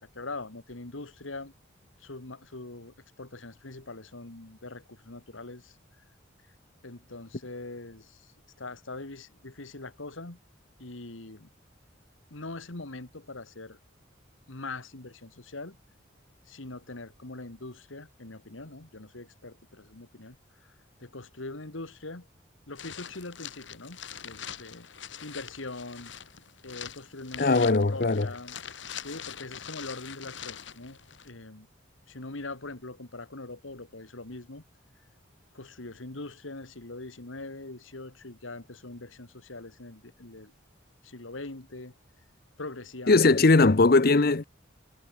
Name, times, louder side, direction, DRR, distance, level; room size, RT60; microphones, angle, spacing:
voice 1, 0.0-1.5 2.0-5.8 6.8-8.3 8.6-10.4 10.8-11.5 12.3-13.8 14.5-15.8 16.5-20.4 20.6-20.7 21.0-22.3 22.7-24.9 25.2-26.1 26.6-28.6 29.0-31.0 31.2-31.7 32.1-34.6 35.5-40.5 41.0-41.9 42.6-43.3, left 2 dB, 85° left, 2.1 m, -42 dB
sound 1, 22.7-31.3, left 9 dB, 70° left, 1.9 m, -43 dB
voice 2, 27.4-28.3 43.1-44.4, left 3 dB, 50° left, 0.8 m, -20 dB
head